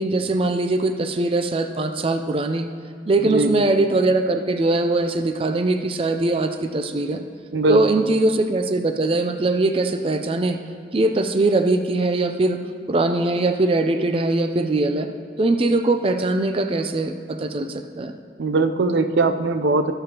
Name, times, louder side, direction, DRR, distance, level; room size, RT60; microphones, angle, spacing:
voice 1, 0.0-2.7 3.1-7.2 7.7-10.6 10.9-12.6 12.9-15.1 15.4-18.1, right 2 dB, 30° right, 7 dB, 0.4 m, -21 dB
voice 2, 3.2-3.5 7.5-8.1 18.4-19.9, right 3 dB, 80° right, 9 dB, 0.5 m, -20 dB
20.0 x 6.8 x 2.9 m, 2.3 s
head